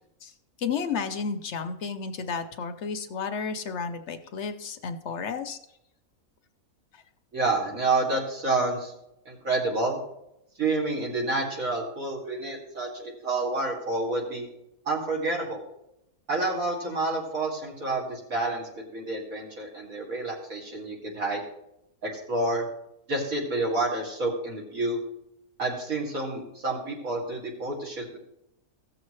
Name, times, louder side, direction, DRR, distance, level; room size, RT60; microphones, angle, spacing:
voice 1, 0.6-5.6 6.9-7.0, left 5 dB, 55° left, 8 dB, 0.9 m, -32 dB
voice 2, 7.3-8.9 9.3-10.0 10.6-14.5 14.9-15.6 16.3-21.4 22.0-22.7 23.1-25.0 25.6-28.2, right 2 dB, 60° right, -2 dB, 2.8 m, -29 dB
16.0 x 7.0 x 3.2 m, 0.83 s
omnidirectional pair, 1.6 m